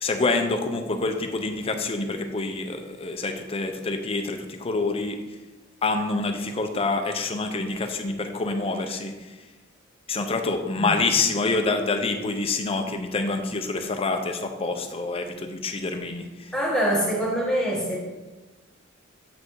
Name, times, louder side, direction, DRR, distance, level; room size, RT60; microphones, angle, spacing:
voice 1, 0.0-5.2 5.8-9.1 10.1-16.5, left 3 dB, 30° left, 6 dB, 0.6 m, -27 dB
voice 2, 16.5-18.0, equal, 5° left, -5 dB, 1.5 m, -24 dB
7.9 x 5.5 x 3.1 m, 1.2 s
head